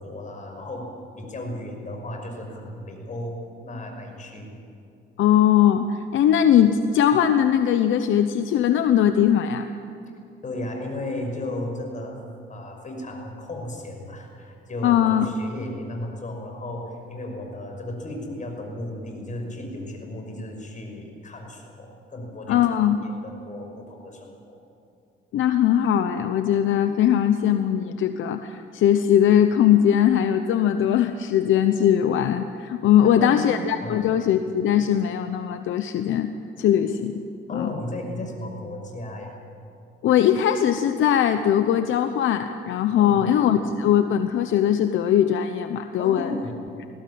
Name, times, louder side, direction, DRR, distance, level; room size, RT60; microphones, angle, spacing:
voice 1, 0.0-4.6 10.4-12.2 12.5-22.6 23.0-24.6 33.0-33.5 33.8-34.0 37.5-39.4 43.0-43.3 46.0-46.6, left 1 dB, 40° left, 3 dB, 5.7 m, -35 dB
voice 2, 5.2-9.7 14.8-15.3 22.5-23.0 25.3-36.3 36.6-37.2 37.5-37.7 40.0-46.3, left 10 dB, 75° left, 9 dB, 0.9 m, -20 dB
20.5 x 16.0 x 8.7 m, 2.5 s
cardioid pair, 90°, 20 cm